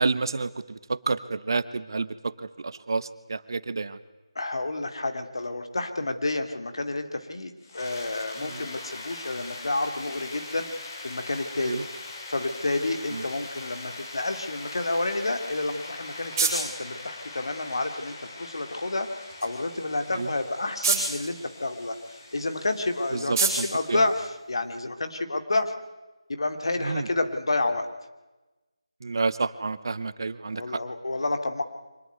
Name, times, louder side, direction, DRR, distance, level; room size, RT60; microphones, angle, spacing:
voice 1, 0.0-4.0 8.5-8.6 11.6-11.8 13.1-13.2 20.1-20.3 23.1-24.0 26.8-27.1 29.0-30.8, right 4 dB, 45° right, 14 dB, 1.1 m, -29 dB
voice 2, 4.3-10.7 11.0-11.8 12.3-19.1 19.4-25.7 26.3-27.9 30.5-31.6, left 2 dB, 55° left, 6 dB, 2.7 m, -29 dB
sound 1, 7.6-24.3, left 3 dB, 35° left, 4.0 m, -42 dB
sound 2, 15.6-25.0, right 4 dB, 15° right, 6.9 m, -34 dB
25.0 x 19.0 x 9.3 m, 1.1 s
figure-of-eight pair, 160°, 3 cm